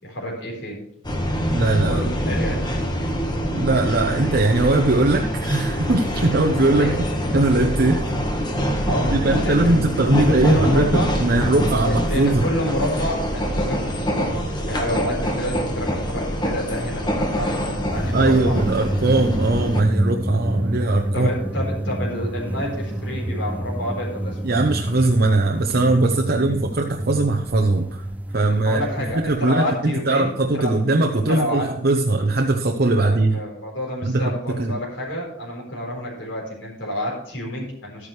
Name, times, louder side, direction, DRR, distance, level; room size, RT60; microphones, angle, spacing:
voice 1, 0.0-0.8 1.8-2.6 6.7-7.0 8.9-9.7 10.2-11.5 11.8-18.6 21.1-24.4 28.5-30.7 31.3-31.7 33.0-38.1, equal, 70° left, -3 dB, 4.2 m, -28 dB
sound 1, 1.0-19.8, equal, 25° left, 1.5 m, -25 dB
voice 2, 1.5-2.1 3.5-7.1 7.3-8.0 9.1-12.5 18.1-21.3 24.4-28.1 28.3-28.8 29.1-33.4 34.0-34.8, right 2 dB, 55° right, 3 dB, 0.8 m, -20 dB
sound 2, 6.3-23.5, right 5 dB, 85° right, 1.6 m, -43 dB
sound 3, 17.9-29.4, right 1 dB, 10° right, 0.4 m, -28 dB
12.5 x 9.7 x 3.3 m, 0.74 s
head